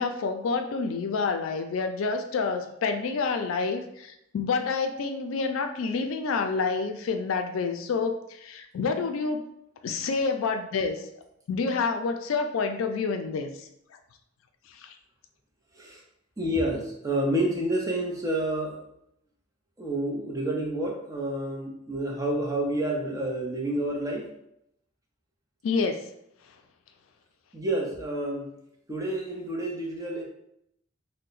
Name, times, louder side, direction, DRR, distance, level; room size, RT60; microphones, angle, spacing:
voice 1, 0.0-9.4 9.8-11.2 11.5-13.5 14.8-14.9 25.6-26.0, left 4 dB, 80° left, 7 dB, 0.4 m, -28 dB
voice 2, 16.4-18.8 19.8-24.3 27.5-28.5 28.9-30.2, right 1 dB, 15° right, -1 dB, 0.5 m, -29 dB
2.8 x 2.1 x 3.9 m, 0.78 s
head